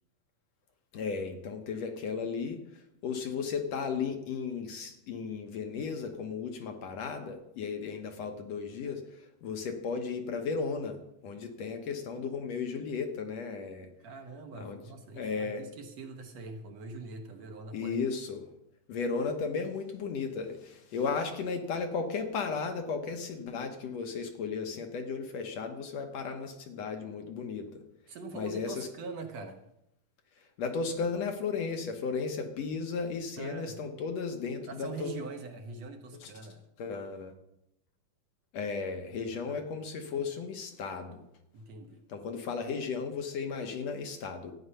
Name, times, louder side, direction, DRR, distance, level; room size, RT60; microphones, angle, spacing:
voice 1, 0.9-13.9 14.5-14.8 15.2-15.6 17.7-18.4 18.9-27.8 28.3-28.9 30.6-35.2 36.1-36.3 36.8-37.3 38.5-41.2 42.1-44.5, left 5 dB, 65° left, 5 dB, 2.0 m, -35 dB
voice 2, 14.0-18.0 28.1-29.6 33.4-33.8 34.7-36.6 39.3-39.7 41.5-42.0, right 3 dB, 65° right, 5 dB, 2.0 m, -43 dB
13.0 x 9.4 x 5.6 m, 0.83 s
omnidirectional pair, 3.6 m